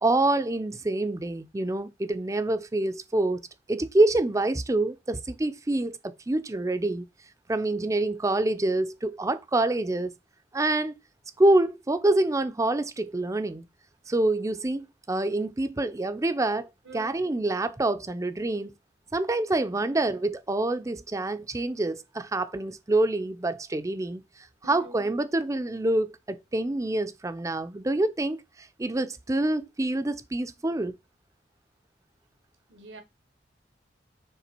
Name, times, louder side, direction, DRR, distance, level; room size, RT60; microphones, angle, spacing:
voice 1, 0.0-3.4 3.7-7.0 7.5-10.1 10.5-11.0 11.4-13.6 14.1-18.7 19.1-24.2 24.6-28.4 28.8-31.0, right 2 dB, 20° right, 0.5 m, -26 dB
voice 2, 16.8-17.2 24.6-25.0 32.7-33.0, right 2 dB, 90° right, 1.3 m, -46 dB
7.0 x 3.3 x 4.4 m
head